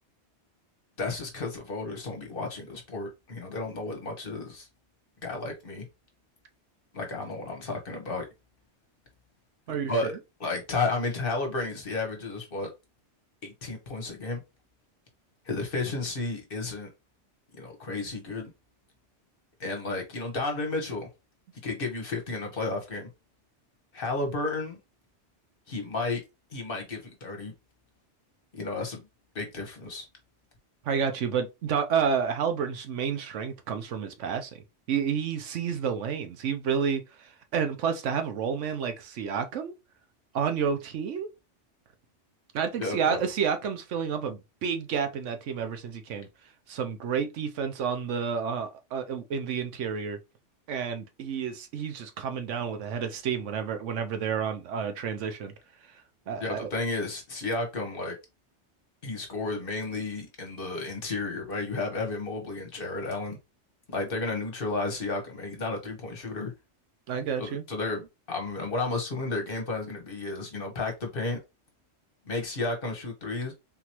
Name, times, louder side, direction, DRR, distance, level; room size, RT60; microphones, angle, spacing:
voice 1, 1.0-4.7 5.2-5.8 6.9-8.2 9.9-10.1 10.4-12.7 13.4-14.4 15.4-16.9 17.6-18.5 19.6-21.1 21.6-23.1 23.9-24.8 25.7-26.2 26.5-27.5 28.5-29.0 29.3-30.1 42.8-43.2 56.4-58.2 59.0-63.4 63.9-66.5 67.4-71.4 72.2-73.5, left 3 dB, 50° left, 1.3 m, -32 dB
voice 2, 30.8-39.7 40.3-41.3 42.5-46.3 46.7-50.2 50.7-55.5 56.3-56.7 67.1-67.6, right 7 dB, 85° right, 1.1 m, -30 dB
3.7 x 2.9 x 2.9 m
omnidirectional pair, 1.2 m